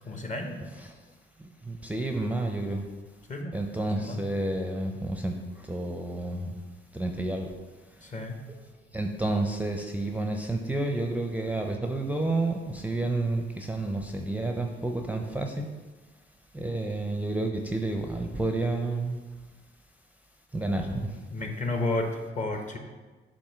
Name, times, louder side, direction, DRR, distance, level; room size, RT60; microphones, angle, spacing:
voice 1, 0.0-0.6 3.3-3.6 4.0-4.2 8.0-8.4 21.3-22.8, left 2 dB, 40° left, 3 dB, 1.0 m, -32 dB
voice 2, 1.7-2.8 3.5-5.3 5.7-6.5 6.9-7.5 8.9-15.7 16.5-19.2 20.5-21.1, right 2 dB, 5° right, 3 dB, 0.5 m, -30 dB
7.1 x 2.6 x 5.6 m, 1.3 s
cardioid pair, 90°, 20 cm